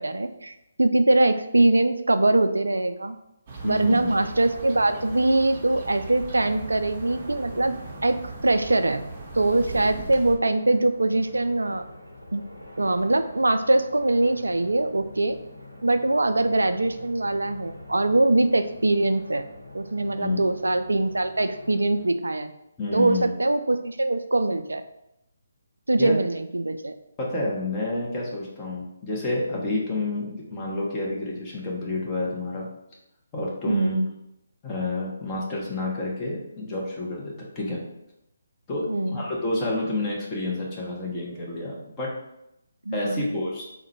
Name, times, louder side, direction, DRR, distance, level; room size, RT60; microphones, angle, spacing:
voice 1, 0.0-3.2 3.6-7.8 8.0-9.0 9.4-11.8 12.3-12.4 12.8-15.4 15.8-19.5 19.7-22.5 22.9-24.8 25.9-26.9 33.7-34.1 38.9-39.2 42.9-43.3, right 2 dB, 75° right, 8 dB, 0.3 m, -22 dB
sound 1, 3.5-10.4, right 3 dB, 30° right, 0.6 m, -39 dB
sound 2, 3.6-22.1, left 1 dB, 90° left, 0.8 m, -45 dB
voice 2, 3.6-4.1 20.1-20.4 22.8-23.3 26.0-26.2 27.2-32.7 33.3-34.0 34.6-37.9 38.7-42.1 42.9-43.6, left 2 dB, 20° left, -4 dB, 0.8 m, -29 dB
3.7 x 2.1 x 4.2 m, 0.84 s
figure-of-eight pair, 145°, 0 cm